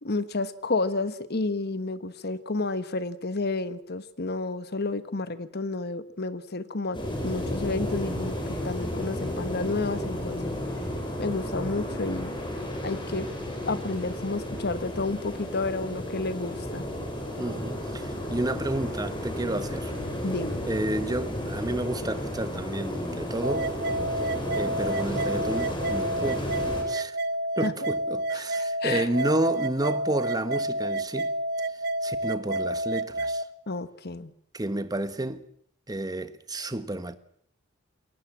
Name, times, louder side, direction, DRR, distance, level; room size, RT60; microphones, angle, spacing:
voice 1, 0.0-8.4 8.6-10.6 11.2-12.3 12.8-13.3 13.7-16.9 20.2-20.6 27.6-27.7 28.4-29.1 33.7-34.3, left 3 dB, 55° left, 1.3 m, -31 dB
sound 1, 6.9-26.8, left 1 dB, 25° left, 5.4 m, -33 dB
voice 2, 17.4-19.9 20.7-23.7 24.5-26.5 26.9-27.2 27.6-31.3 31.7-33.4 34.5-35.4 35.9-37.2, right 1 dB, 20° right, 1.2 m, -31 dB
sound 2, 23.4-33.4, right 1 dB, 55° right, 0.9 m, -29 dB
22.5 x 18.5 x 7.4 m
head